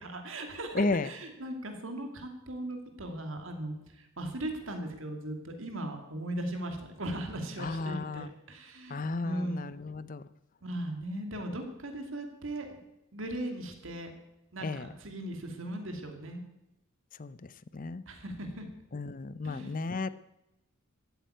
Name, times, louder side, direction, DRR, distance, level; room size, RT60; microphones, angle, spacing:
voice 1, 0.0-9.6 10.6-12.8 13.1-14.1 14.5-16.4 18.1-18.6 19.4-19.8, right 1 dB, 60° right, 5 dB, 2.6 m, -38 dB
voice 2, 0.7-1.1 7.6-8.3 8.9-10.2 14.6-14.9 17.2-17.4 17.7-18.0 18.9-20.1, left 3 dB, 40° left, 15 dB, 0.6 m, -33 dB
14.0 x 9.0 x 9.2 m, 0.91 s
head